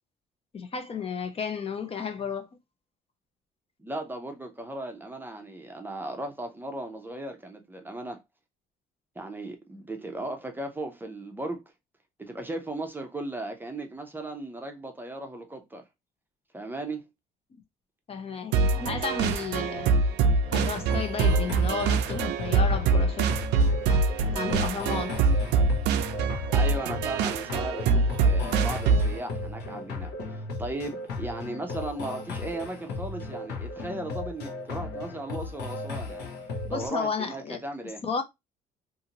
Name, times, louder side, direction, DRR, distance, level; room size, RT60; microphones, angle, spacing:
voice 1, 0.5-2.5 17.5-17.6 18.1-20.0 20.5-23.3 24.3-25.2 36.6-37.6 38.0-38.2, left 6 dB, 35° left, 0.5 m, -32 dB
voice 2, 3.8-8.2 9.2-11.6 12.2-15.8 16.5-17.0 26.5-36.3 36.7-38.0, right 2 dB, 10° right, 0.6 m, -36 dB
sound 1, 18.5-29.2, right 4 dB, 80° right, 0.4 m, -24 dB
sound 2, 20.4-36.9, left 3 dB, 75° left, 0.9 m, -36 dB
2.7 x 2.5 x 2.8 m
cardioid pair, 110°, 17 cm